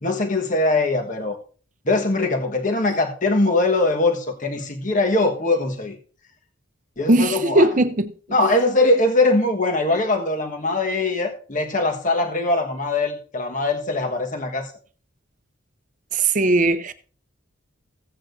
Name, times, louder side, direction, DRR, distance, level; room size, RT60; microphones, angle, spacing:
voice 1, 0.0-1.4 1.9-6.0 7.0-7.7 8.3-14.7, left 2 dB, 40° left, 1.3 m, -21 dB
voice 2, 7.1-8.1 16.1-16.9, right 2 dB, 35° right, 0.7 m, -18 dB
16.0 x 8.7 x 2.6 m
head